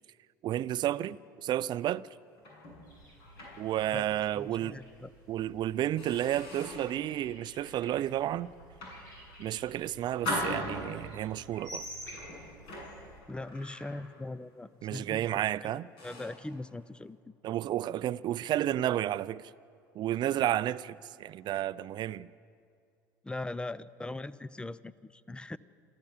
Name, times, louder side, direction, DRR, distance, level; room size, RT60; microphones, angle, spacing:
voice 1, 0.4-2.1 3.6-4.8 5.3-8.5 9.4-11.9 14.8-15.9 17.4-19.5 20.0-22.3, right 12 dB, 45° right, 0.5 m, -31 dB
sound 1, 2.4-4.2 4.6-4.8 5.3-5.5 6.0-7.0 7.6-7.9 8.6-9.6 10.2-11.2 12.0-14.4 14.7-14.9 15.5-15.6 16.0-16.5, left 1 dB, 60° left, 7.7 m, -40 dB
sound 2, 2.8-13.2, equal, 90° left, 7.2 m, -51 dB
voice 2, 4.3-5.1 13.3-15.7 16.0-17.2 23.2-25.6, left 2 dB, 10° left, 0.7 m, -40 dB
26.5 x 14.5 x 7.4 m
hypercardioid pair, 75°, 10 cm